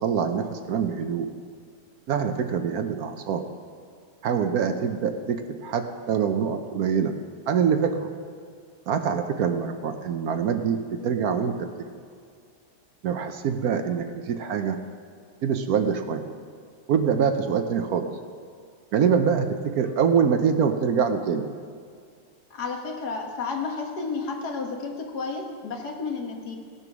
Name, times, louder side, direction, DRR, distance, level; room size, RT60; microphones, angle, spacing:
voice 1, 0.0-1.3 2.1-3.4 4.2-7.1 7.5-8.1 8.9-11.7 13.0-14.8 15.4-16.2 16.9-18.1 18.9-21.5, right 7 dB, 65° right, 7 dB, 1.1 m, -24 dB
voice 2, 22.5-26.6, left 4 dB, 70° left, 2 dB, 1.9 m, -31 dB
17.5 x 6.8 x 6.1 m, 2.2 s
omnidirectional pair, 1.8 m